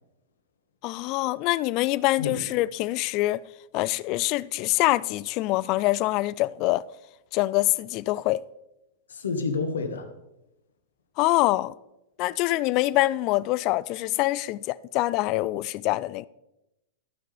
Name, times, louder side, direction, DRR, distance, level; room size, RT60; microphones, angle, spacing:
voice 1, 0.8-3.4 3.7-6.8 7.3-8.4 11.2-11.7 12.2-16.3, left 18 dB, 45° left, 0.3 m, -25 dB
voice 2, 9.1-10.1, left 4 dB, 85° left, 1.4 m, -29 dB
14.5 x 5.9 x 3.4 m
hypercardioid pair, 115°, 0 cm